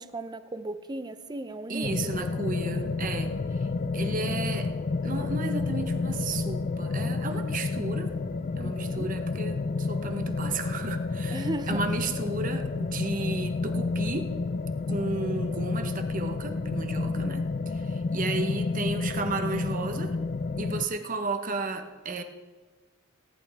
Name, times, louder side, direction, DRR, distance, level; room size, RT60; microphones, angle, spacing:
voice 1, 0.0-2.3 8.5-9.1 11.3-11.8, right 2 dB, 20° right, 10 dB, 0.5 m, -36 dB
voice 2, 1.7-3.7 3.9-4.7 5.0-8.2 8.6-14.3 14.9-20.2 20.6-22.2, right 3 dB, 40° right, 6 dB, 0.9 m, -33 dB
sound 1, 1.8-20.8, left 3 dB, 40° left, 0.4 m, -30 dB
18.0 x 11.0 x 3.5 m, 1.3 s
head